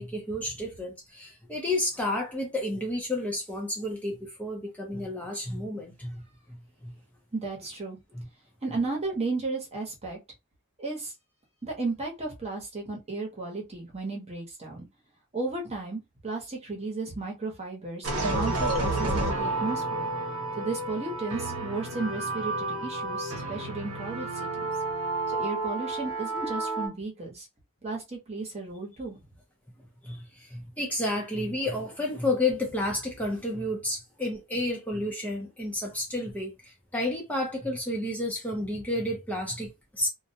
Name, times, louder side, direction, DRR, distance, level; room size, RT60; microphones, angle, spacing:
voice 1, 0.0-6.2 6.5-6.9 8.1-8.3 30.0-40.1, left 1 dB, 5° left, 0.5 m, -31 dB
voice 2, 7.3-8.0 8.6-10.2 10.8-11.1 11.6-14.9 15.3-20.1 20.6-24.7 25.3-27.5 27.8-29.2, right 3 dB, 30° right, 0.9 m, -34 dB
sound 1, 18.0-26.9, right 2 dB, 85° right, 1.0 m, -30 dB
2.3 x 2.1 x 2.8 m
head